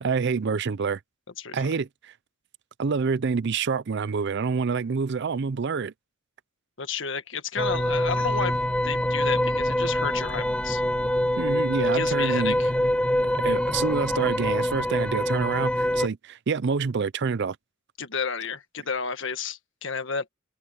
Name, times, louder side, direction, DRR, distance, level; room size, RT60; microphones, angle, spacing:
voice 1, 0.0-1.0 1.5-2.1 2.8-5.9 11.4-12.6 13.4-17.6, right 5 dB, 60° right, 0.5 m, -27 dB
voice 2, 1.4-1.7 6.8-8.5 8.8-10.8 11.9-12.7 18.0-20.3, left 5 dB, 65° left, 1.6 m, -31 dB
sound 1, 7.6-16.1, left 1 dB, 5° left, 1.5 m, -25 dB
open air
head